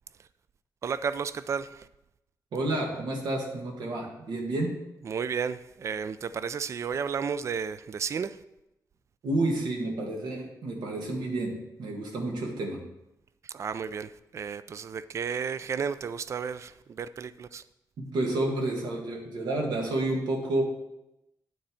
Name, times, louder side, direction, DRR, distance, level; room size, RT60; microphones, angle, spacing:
voice 1, 0.8-1.9 5.1-8.4 13.4-17.6, right 6 dB, 45° right, 0.3 m, -33 dB
voice 2, 2.5-4.8 9.2-12.8 18.0-20.6, right 2 dB, 90° right, 2.0 m, -30 dB
9.2 x 4.3 x 7.0 m
wide cardioid pair, 160°, 7 cm